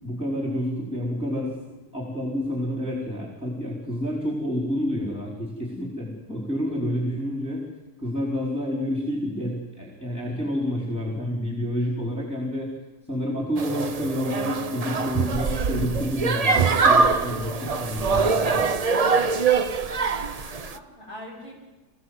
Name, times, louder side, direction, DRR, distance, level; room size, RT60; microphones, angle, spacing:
voice 1, 0.0-7.6 8.0-12.7 13.1-18.7, equal, 10° left, -3 dB, 4.1 m, -29 dB
sound 1, 13.6-20.8, right 4 dB, 70° right, 0.3 m, -23 dB
voice 2, 19.8-21.5, equal, 25° right, -4 dB, 7.6 m, -42 dB
23.0 x 15.5 x 7.9 m, 1.1 s
omnidirectional pair, 1.8 m